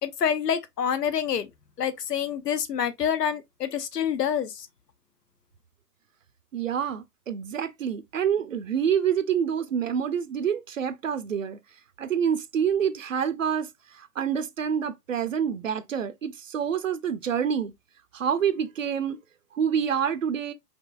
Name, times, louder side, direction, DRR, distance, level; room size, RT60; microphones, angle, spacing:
voice 1, 0.0-1.5 1.8-4.7, left 8 dB, 80° left, 0.9 m, -27 dB
voice 2, 6.5-11.6 12.0-17.7 18.1-19.2 19.5-20.5, right 8 dB, 55° right, 0.6 m, -27 dB
5.2 x 3.0 x 2.4 m
hypercardioid pair, 165°, 47 cm